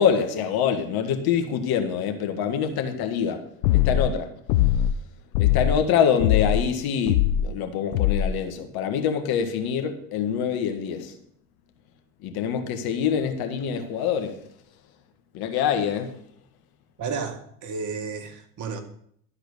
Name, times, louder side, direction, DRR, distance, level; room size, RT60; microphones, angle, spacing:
voice 1, 0.0-3.4 3.7-4.3 5.4-11.1 12.2-14.4 15.3-16.2, left 8 dB, 55° left, 5 dB, 1.8 m, -25 dB
sound 1, 3.6-4.1 4.5-5.0 5.3-5.8 6.2-6.7 7.1-7.5 7.9-8.3, left 11 dB, 75° left, 0.7 m, -21 dB
voice 2, 17.0-18.8, right 5 dB, 40° right, 5 dB, 1.8 m, -32 dB
12.5 x 4.8 x 6.7 m, 0.67 s
hypercardioid pair, 90°, 44 cm